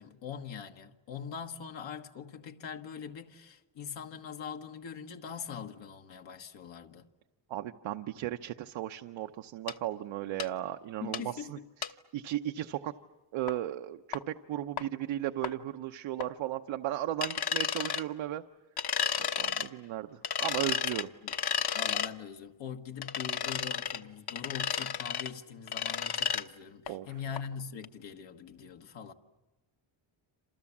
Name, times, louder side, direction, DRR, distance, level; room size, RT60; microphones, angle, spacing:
voice 1, 0.0-7.1 11.0-11.7 19.8-19.9 21.2-21.3 21.7-29.1, left 7 dB, 75° left, 1.6 m, -42 dB
voice 2, 7.5-11.6 11.9-12.9 13.3-18.4 19.2-21.1 26.9-27.1, right 13 dB, 85° right, 0.9 m, -36 dB
sound 1, 9.7-9.8 10.4-10.5 11.1-11.2 11.8-11.9 13.5-13.6 14.1-14.2 14.8-14.9 15.4-15.5 16.2-16.3 17.2-18.0 18.8-19.7 20.2-22.1 23.0-24.0 24.3-25.3 25.7-26.4 26.9-27.0 27.4-27.5 27.8-27.9, left 7 dB, 55° left, 1.2 m, -32 dB
28.5 x 27.5 x 7.3 m
cardioid pair, 90°, 45 cm